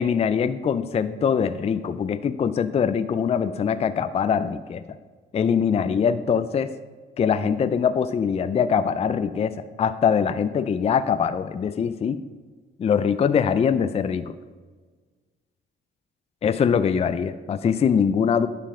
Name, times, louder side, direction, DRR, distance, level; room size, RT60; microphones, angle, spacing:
voice 1, 0.0-4.8 5.3-6.7 7.2-12.2 12.8-14.3 16.4-18.5, left 7 dB, 30° left, 12 dB, 0.4 m, -23 dB
10.0 x 5.1 x 4.9 m, 1.5 s
cardioid pair, 90°, 20 cm